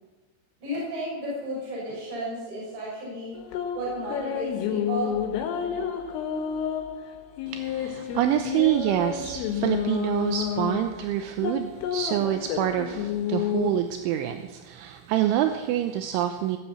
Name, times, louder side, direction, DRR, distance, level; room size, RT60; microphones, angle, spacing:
voice 1, 0.6-3.4 3.7-5.1, right 1 dB, 60° right, -8 dB, 8.8 m, -33 dB
sound 1, 3.4-13.7, left 9 dB, 80° left, 4.0 m, -30 dB
voice 2, 7.5-16.6, right 12 dB, 80° right, 6 dB, 3.0 m, -26 dB
19.0 x 7.6 x 8.5 m, 1.2 s
omnidirectional pair, 5.8 m